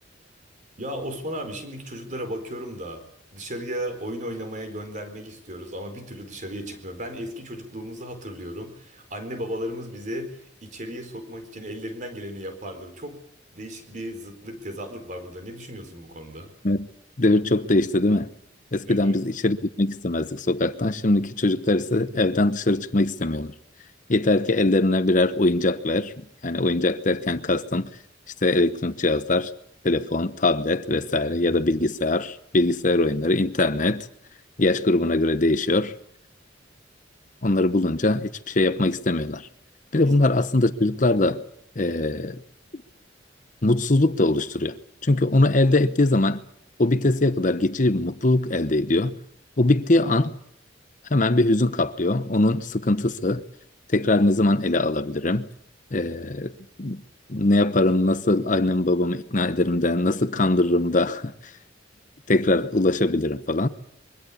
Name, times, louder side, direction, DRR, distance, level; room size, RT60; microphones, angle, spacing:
voice 1, 0.8-3.0 3.3-13.2 13.5-16.5 18.9-19.2 40.0-40.2, equal, 40° right, 4.4 m, -35 dB
voice 2, 17.2-18.3 18.7-23.5 24.1-27.9 28.4-29.5 29.8-34.1 34.6-35.9 37.4-39.5 39.9-41.4 41.8-42.4 42.7-42.8 43.6-44.8 45.0-46.4 46.8-49.2 49.6-50.3 51.1-53.4 53.9-55.5 55.9-56.5 56.8-57.0 57.3-61.5 62.3-63.7, left 2 dB, 40° left, 1.0 m, -22 dB
23.5 x 17.5 x 8.6 m
head